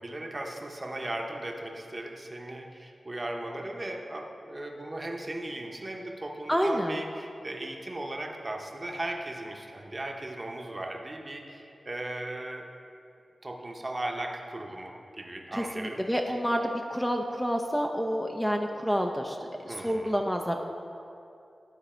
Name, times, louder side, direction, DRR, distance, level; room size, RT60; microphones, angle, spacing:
voice 1, 0.0-12.7 13.4-16.0 19.7-20.1, right 1 dB, 35° right, 2 dB, 0.8 m, -37 dB
voice 2, 6.5-7.0 15.5-20.6, equal, 5° left, 2 dB, 0.5 m, -29 dB
11.5 x 4.0 x 4.4 m, 2.6 s
cardioid pair, 55°, 0 cm